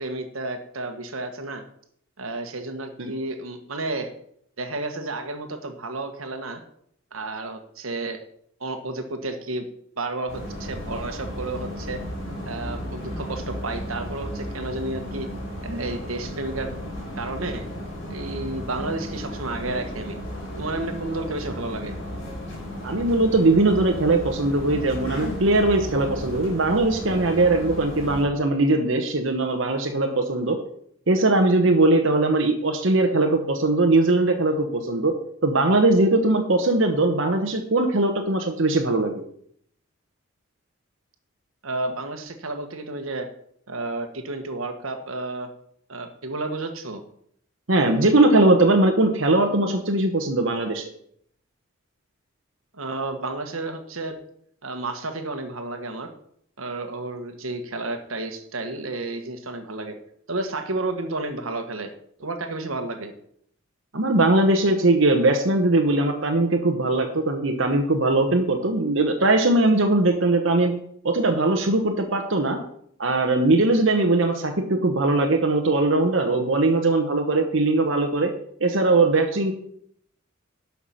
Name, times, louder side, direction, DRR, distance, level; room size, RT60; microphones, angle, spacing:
voice 1, 0.0-1.6 2.2-4.1 4.6-6.6 7.1-8.2 8.6-9.6 10.0-12.0 12.5-15.3 15.6-16.7 17.1-17.7 18.1-20.2 20.6-22.0 41.6-43.3 43.7-45.5 45.9-47.0 52.7-54.2 54.6-56.1 56.6-60.0 60.3-61.9 62.2-63.1, right 2 dB, 90° right, 6 dB, 1.4 m, -31 dB
sound 1, 10.3-28.2, equal, 60° left, 3.8 m, -34 dB
voice 2, 22.8-30.6 31.1-35.1 35.4-39.2 47.7-50.9 63.9-70.7 71.0-72.6 73.0-78.3 78.6-79.5, right 2 dB, 70° right, 3 dB, 1.1 m, -20 dB
11.5 x 5.9 x 5.8 m, 0.66 s
head